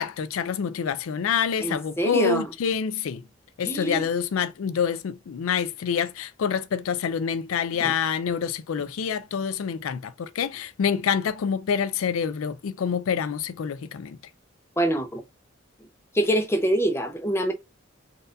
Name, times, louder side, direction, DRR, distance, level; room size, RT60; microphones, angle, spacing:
voice 1, 0.0-3.2 3.6-14.2, left 7 dB, 85° left, 0.4 m, -27 dB
voice 2, 1.6-2.5 3.6-4.1 7.8-7.9 14.8-15.2 16.1-17.5, right 1 dB, 10° left, 0.7 m, -25 dB
4.1 x 2.5 x 2.5 m
head